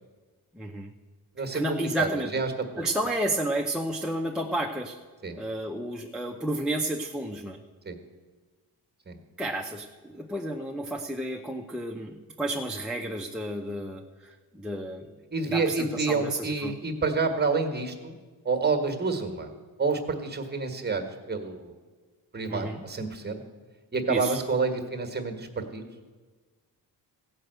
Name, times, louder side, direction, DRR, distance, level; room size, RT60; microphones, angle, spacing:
voice 1, 0.6-0.9 1.5-2.3 2.8-5.0 5.3-7.6 9.4-15.1 15.5-16.7 22.5-22.8 24.1-24.4, right 1 dB, ahead, 0 dB, 0.6 m, -31 dB
voice 2, 1.4-2.9 5.2-5.4 7.8-8.0 9.1-9.2 15.3-18.2 18.4-19.5 19.8-21.7 22.3-23.4 23.9-25.8, right 4 dB, 25° right, 6 dB, 1.5 m, -29 dB
15.5 x 5.5 x 7.9 m, 1.4 s
cardioid pair, 110°, 40 cm